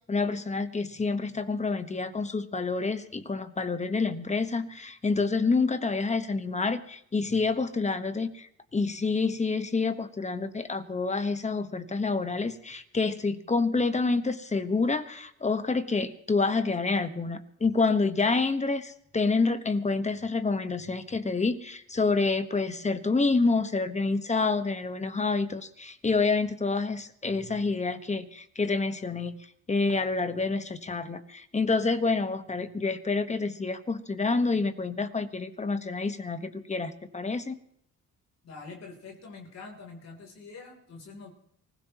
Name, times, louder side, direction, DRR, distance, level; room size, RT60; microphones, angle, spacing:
voice 1, 0.1-37.6, left 3 dB, 25° left, 10 dB, 1.2 m, -28 dB
voice 2, 38.4-41.3, left 4 dB, 60° left, 1 dB, 3.4 m, -45 dB
24.5 x 16.0 x 3.0 m, 0.71 s
cardioid pair, 90°, 30 cm